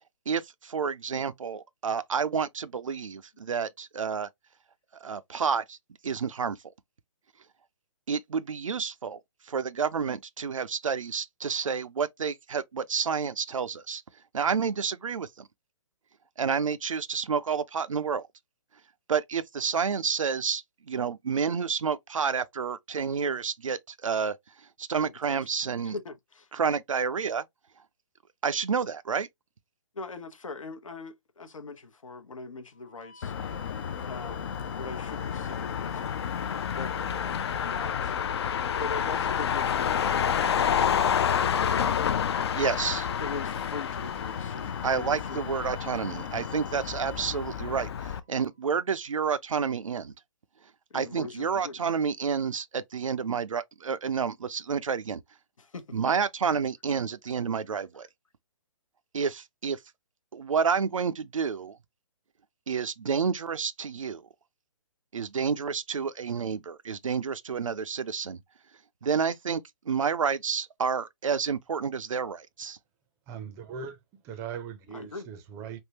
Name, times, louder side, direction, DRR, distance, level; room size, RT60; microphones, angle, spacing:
voice 1, 0.3-4.3 5.0-5.8 6.0-6.6 8.1-14.0 14.3-15.5 16.4-18.3 19.1-26.0 26.5-27.4 28.4-29.3 42.5-43.1 44.8-50.1 50.9-55.2 55.9-58.1 59.1-59.8 60.3-61.8 62.7-64.2 65.1-68.4 69.0-69.6 69.9-72.8, right 6 dB, 85° right, 0.4 m, -29 dB
voice 2, 25.0-25.4 25.9-26.5 29.9-33.3 34.0-36.0 36.6-38.2 38.8-40.9 41.6-42.2 43.2-45.6 50.9-51.7 55.6-56.0 74.9-75.3, left 4 dB, 80° left, 0.8 m, -41 dB
sound 1, 32.7-48.5, left 1 dB, 15° left, 0.7 m, -49 dB
Motor vehicle (road), 33.2-48.2, left 8 dB, 55° left, 0.4 m, -29 dB
voice 3, 73.3-75.8, right 7 dB, 15° right, 0.5 m, -40 dB
3.5 x 2.1 x 2.8 m
figure-of-eight pair, 140°, 17 cm